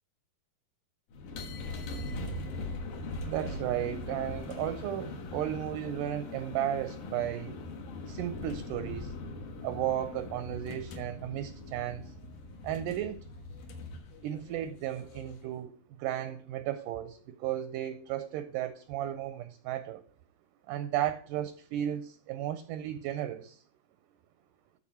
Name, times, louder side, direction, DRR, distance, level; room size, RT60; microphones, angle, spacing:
sound 1, 1.1-15.5, left 2 dB, 65° left, 2.6 m, -41 dB
voice 1, 3.2-7.6 8.1-9.1 9.6-12.1 12.6-13.3 14.2-20.0 20.7-23.6, right 12 dB, 80° right, 11 dB, 2.0 m, -34 dB
13.5 x 4.6 x 4.3 m, 0.43 s
omnidirectional pair, 4.2 m